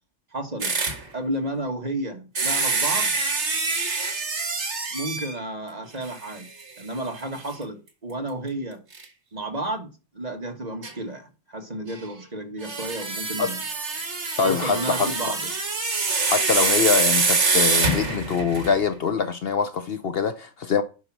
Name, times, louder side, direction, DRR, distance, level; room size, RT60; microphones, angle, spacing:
voice 1, 0.3-0.7 1.1-3.1 4.9-6.5 6.8-8.8 9.3-13.6 14.4-15.5, right 1 dB, 35° right, 1.7 m, -32 dB
sound 1, 0.6-1.0 2.4-5.4 6.1-6.2 6.6-6.7 8.9-9.0 10.8-10.9 12.6-18.8, right 4 dB, 65° right, 2.0 m, -25 dB
voice 2, 14.4-15.1 16.3-20.8, left 6 dB, 60° left, 0.9 m, -24 dB
8.2 x 5.8 x 6.0 m
omnidirectional pair, 1.2 m